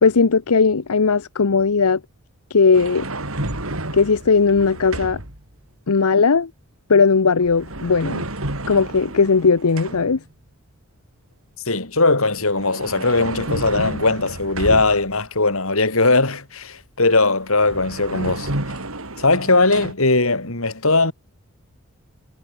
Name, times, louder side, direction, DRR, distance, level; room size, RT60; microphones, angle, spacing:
voice 1, 0.0-2.0 2.5-3.1 3.9-5.2 5.9-6.5 6.9-8.2 8.7-10.2, left 4 dB, 90° left, 0.8 m, -17 dB
sound 1, 2.7-5.4 7.4-10.2 12.4-15.3 17.2-17.3 17.5-19.9, right 1 dB, 70° right, 5.1 m, -31 dB
voice 2, 11.7-18.5 19.2-21.1, left 3 dB, 70° left, 4.4 m, -19 dB
head